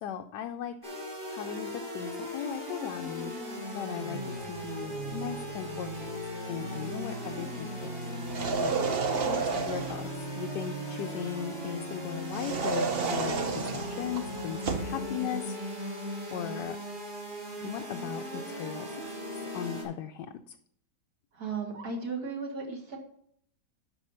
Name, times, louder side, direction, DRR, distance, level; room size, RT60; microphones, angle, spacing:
voice 1, 0.0-0.8 1.3-3.3 3.7-6.2 6.5-7.9 8.6-8.7 9.3-15.6 16.3-16.8 17.6-18.9 19.5-20.5, left 9 dB, 80° left, 4 dB, 1.2 m, -38 dB
sound 1, 0.8-19.8, equal, 25° right, 3.8 m, -37 dB
sound 2, 8.2-10.1 12.3-15.0, right 4 dB, 45° right, 0.9 m, -31 dB
voice 2, 21.3-23.0, right 4 dB, 60° right, 0 dB, 2.4 m, -35 dB
11.5 x 4.8 x 5.6 m, 0.67 s
omnidirectional pair, 1.9 m